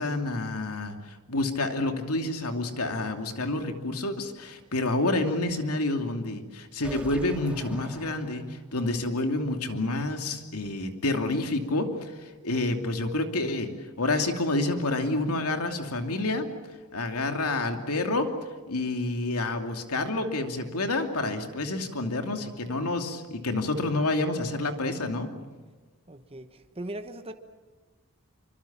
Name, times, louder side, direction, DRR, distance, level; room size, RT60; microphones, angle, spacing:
voice 1, 0.0-16.5 16.9-18.3 18.7-25.3, left 2 dB, 85° left, 5 dB, 2.7 m, -29 dB
sound 1, 6.8-8.8, right 1 dB, 5° right, 2.2 m, -44 dB
voice 2, 26.1-27.3, right 1 dB, 25° right, 7 dB, 1.2 m, -39 dB
26.0 x 24.5 x 7.3 m, 1.3 s
head